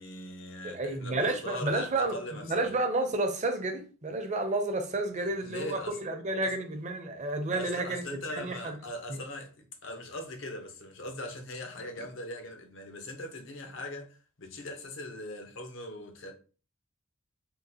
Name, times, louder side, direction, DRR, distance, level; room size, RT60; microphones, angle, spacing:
voice 1, 0.0-2.7 5.2-6.0 6.4-6.5 7.5-16.3, left 1 dB, 65° left, 0.7 m, -41 dB
voice 2, 0.6-2.2 2.4-8.8 9.1-9.2, right 2 dB, 35° right, 0.6 m, -31 dB
3.7 x 2.3 x 2.8 m
head